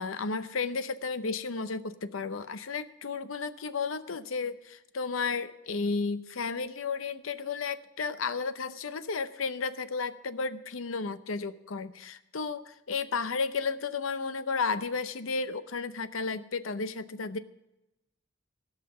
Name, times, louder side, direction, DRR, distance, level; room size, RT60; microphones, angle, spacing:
voice 1, 0.0-17.4, left 4 dB, 90° left, 13 dB, 0.7 m, -33 dB
16.0 x 5.8 x 7.8 m, 0.92 s
head